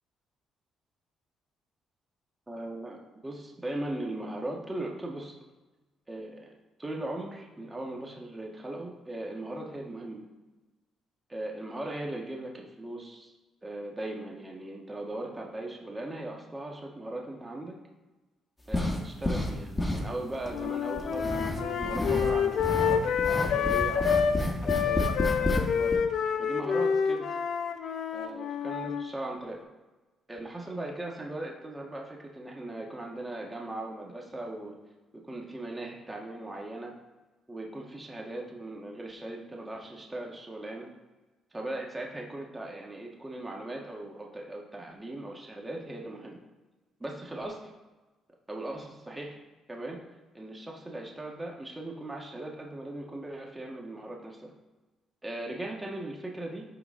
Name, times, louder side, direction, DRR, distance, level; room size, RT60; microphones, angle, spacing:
voice 1, 2.5-5.3 6.1-10.2 11.3-13.3 13.6-17.8 18.7-23.1 23.4-25.1 25.4-26.0 26.4-27.3 28.1-29.6 30.3-34.8 35.1-36.9 37.5-40.9 41.5-46.4 47.0-47.7 48.5-49.4 49.7-50.0 50.3-54.5 55.2-56.6, right 1 dB, 15° right, -1 dB, 1.5 m, -38 dB
sound 1, 18.7-19.5 19.8-20.6 21.0-22.3 22.6-25.6 25.9-26.0, left 1 dB, 15° left, 1.5 m, -30 dB
sound 2, 20.5-24.4 24.7-29.0, left 7 dB, 70° left, 0.8 m, -28 dB
11.5 x 3.9 x 3.8 m, 1.2 s
cardioid pair, 90°, 0 cm